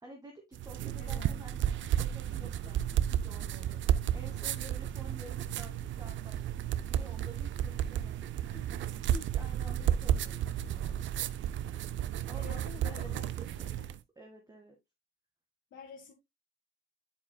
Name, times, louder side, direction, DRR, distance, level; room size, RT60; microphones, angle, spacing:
voice 1, 0.0-11.2 12.0-12.6 12.8-14.8, right 2 dB, 20° right, 1.9 m, -52 dB
sound 1, 0.5-14.0, right 10 dB, 70° right, 0.6 m, -33 dB
voice 2, 1.0-1.5 12.4-13.9 15.7-16.1, left 7 dB, 70° left, 1.6 m, -50 dB
9.8 x 5.0 x 2.2 m
cardioid pair, 90°, 20 cm